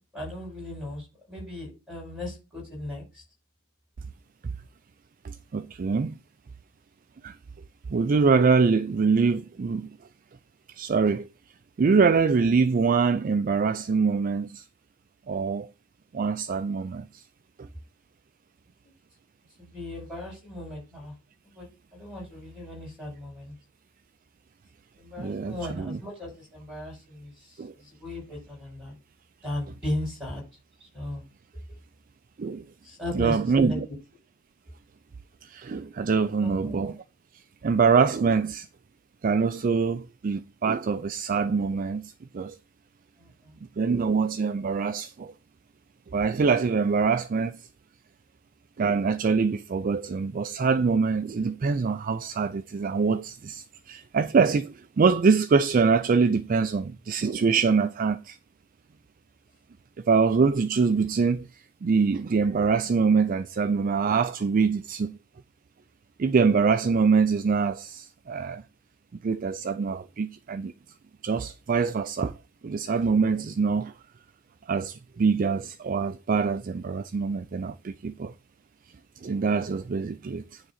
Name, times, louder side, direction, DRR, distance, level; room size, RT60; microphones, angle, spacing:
voice 1, 0.0-3.2 19.6-21.1 21.5-23.5 25.0-28.9 29.4-30.4 30.8-31.2 32.8-33.8 36.4-36.9 43.2-43.6, left 1 dB, 5° right, 5.5 m, -37 dB
voice 2, 5.2-6.1 7.2-7.4 7.9-9.9 10.7-11.3 11.8-14.6 15.3-15.7 16.1-17.2 17.6-17.7 25.2-26.0 27.6-27.7 32.4-32.7 33.1-33.9 35.4-36.9 37.6-38.7 39.2-42.6 43.8-45.3 46.1-47.7 48.8-58.4 60.0-65.2 66.2-68.6 69.2-70.7 71.2-72.4 72.6-73.9 74.7-78.3 79.2-80.6, right 5 dB, 40° right, 0.3 m, -24 dB
9.7 x 3.6 x 5.7 m
head